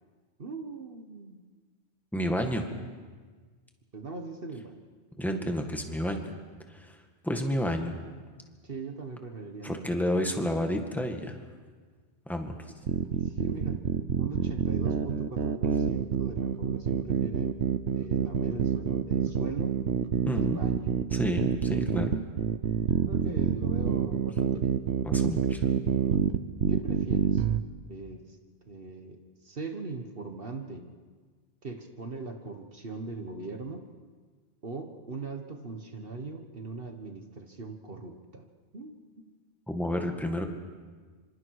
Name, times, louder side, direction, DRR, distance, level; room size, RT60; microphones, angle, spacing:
voice 1, 0.4-1.4 3.9-4.8 8.6-10.0 13.1-13.8 14.2-17.6 17.9-19.8 20.3-20.8 23.0-24.8 26.7-27.5 27.9-28.4 28.7-30.9 31.6-33.8 34.6-38.4 38.7-39.3, right 3 dB, 55° right, 5 dB, 1.6 m, -40 dB
voice 2, 2.1-2.6 5.2-6.2 6.7-7.0 7.2-8.0 9.6-11.4 12.3-12.5 20.3-20.6 21.1-22.1 25.0-25.6 39.7-40.5, equal, ahead, 3 dB, 1.9 m, -30 dB
sound 1, 12.9-27.6, right 7 dB, 85° right, 1.2 m, -27 dB
26.5 x 25.5 x 4.8 m, 1.5 s
omnidirectional pair, 1.1 m